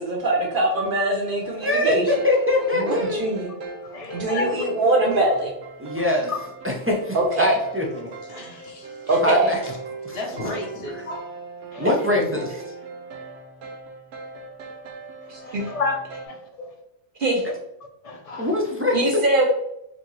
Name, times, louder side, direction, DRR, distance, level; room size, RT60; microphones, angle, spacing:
voice 1, 0.0-2.1 2.7-3.5 4.1-5.5 7.1-7.6 9.1-9.5 12.2-12.3 15.3-15.6 17.2-17.4 18.9-19.5, right 2 dB, 60° right, 0 dB, 0.7 m, -22 dB
sound 1, 1.4-16.3, right 3 dB, 85° right, 0.9 m, -39 dB
voice 2, 1.6-3.4 5.8-6.3 6.6-8.1 9.2-9.6 11.8-12.6 18.4-19.0, left 1 dB, 20° right, -2 dB, 0.4 m, -23 dB
voice 3, 3.9-4.7 6.3-6.4 11.1-11.2 11.7-11.9 15.4-16.0 16.3-16.7 18.0-18.5, left 4 dB, 40° left, 2 dB, 0.6 m, -29 dB
voice 4, 8.2-9.2 10.1-11.1, left 1 dB, 75° left, 0 dB, 1.2 m, -34 dB
4.4 x 2.7 x 3.0 m, 0.83 s
omnidirectional pair, 1.1 m